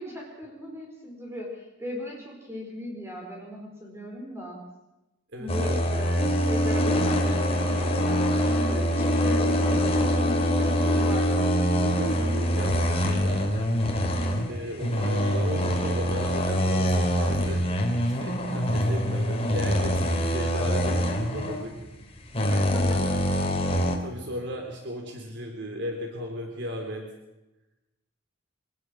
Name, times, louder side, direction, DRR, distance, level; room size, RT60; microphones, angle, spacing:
voice 1, 0.0-4.6 5.4-8.2 8.7-11.7 22.5-23.0, left 1 dB, 15° right, -1 dB, 4.6 m, -38 dB
voice 2, 5.3-5.8 11.8-13.7 14.5-17.6 18.2-21.7 24.0-27.0, equal, 65° right, 2 dB, 3.6 m, -35 dB
sound 1, 5.5-24.0, equal, 30° left, 3.4 m, -24 dB
25.0 x 18.5 x 6.4 m, 0.97 s
head